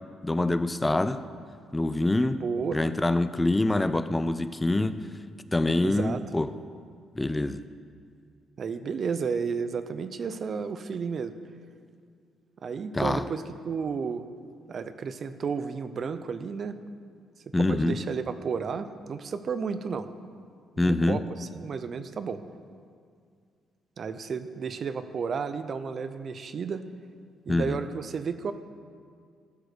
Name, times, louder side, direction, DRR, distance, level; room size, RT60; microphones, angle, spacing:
voice 1, 0.2-1.2 1.7-2.4 2.7-5.1 5.5-6.5 7.2-7.6 12.9-13.2 17.5-18.0 20.8-21.2 27.5-27.8, left 2 dB, 15° left, 12 dB, 0.4 m, -25 dB
voice 2, 2.4-2.9 5.8-6.2 8.6-11.3 12.6-14.2 14.7-16.8 17.7-20.1 20.8-22.4 24.0-26.8 27.5-28.5, right 5 dB, 50° right, 11 dB, 0.5 m, -32 dB
13.5 x 4.8 x 6.7 m, 2.2 s
cardioid pair, 90°, 0 cm